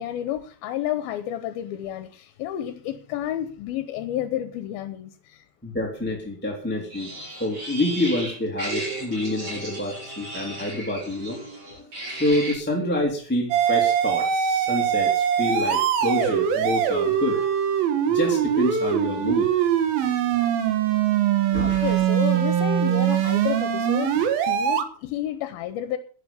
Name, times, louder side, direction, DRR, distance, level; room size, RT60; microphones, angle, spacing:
voice 1, 0.0-5.4 21.6-24.2 24.5-26.0, left 12 dB, 80° left, 11 dB, 2.7 m, -30 dB
voice 2, 5.6-11.4 11.8-17.5 18.1-19.6 21.5-22.0, left 1 dB, 5° left, -1 dB, 2.4 m, -27 dB
sound 1, 6.9-12.5, right 2 dB, 35° right, 8.8 m, -35 dB
sound 2, 13.5-24.8, right 9 dB, 75° right, 3.2 m, -22 dB
11.0 x 11.0 x 7.0 m, 0.43 s
omnidirectional pair, 4.4 m